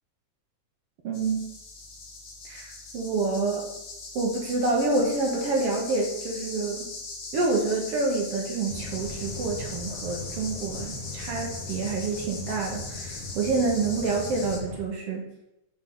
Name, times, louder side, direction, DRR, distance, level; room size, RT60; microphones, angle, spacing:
voice 1, 1.0-1.4 2.5-3.7 4.2-6.9 7.3-15.2, right 3 dB, 60° right, 0 dB, 1.9 m, -27 dB
sound 1, 1.1-14.6, left 3 dB, 50° left, 1.5 m, -40 dB
sound 2, 8.7-14.8, left 2 dB, 85° left, 0.8 m, -39 dB
6.8 x 3.8 x 5.5 m, 0.84 s
omnidirectional pair, 3.4 m